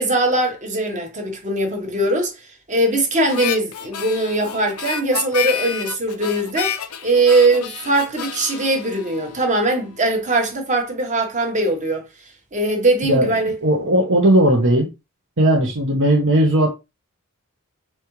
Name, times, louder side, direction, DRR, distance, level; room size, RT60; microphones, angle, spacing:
voice 1, 0.0-2.3 2.7-6.8 7.0-12.0 12.5-13.5, right 2 dB, 35° right, 1.3 m, -20 dB
Harmonica, 3.3-9.8, left 8 dB, 70° left, 0.5 m, -30 dB
voice 2, 13.6-14.9 15.4-16.7, right 1 dB, 60° right, 1.1 m, -16 dB
4.3 x 3.5 x 3.1 m
head